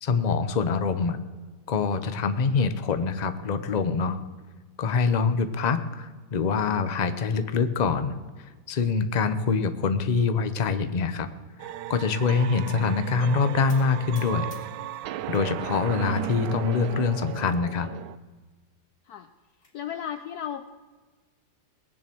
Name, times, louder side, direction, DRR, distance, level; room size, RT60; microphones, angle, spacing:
voice 1, 0.0-1.2 1.7-4.2 4.8-8.2 8.7-11.3 11.9-14.5 15.3-17.9, left 5 dB, 50° left, 11 dB, 0.5 m, -25 dB
sound 1, 11.6-18.2, right 13 dB, 75° right, 1.2 m, -35 dB
sound 2, 13.7-15.5 15.9-16.5 17.0-17.2 17.4-17.5 17.9-18.0 19.1-19.8, left 2 dB, 25° left, 2.5 m, -54 dB
voice 2, 19.7-20.7, left 9 dB, 65° left, 10 dB, 1.0 m, -35 dB
19.5 x 7.3 x 7.7 m, 1.4 s
omnidirectional pair, 2.0 m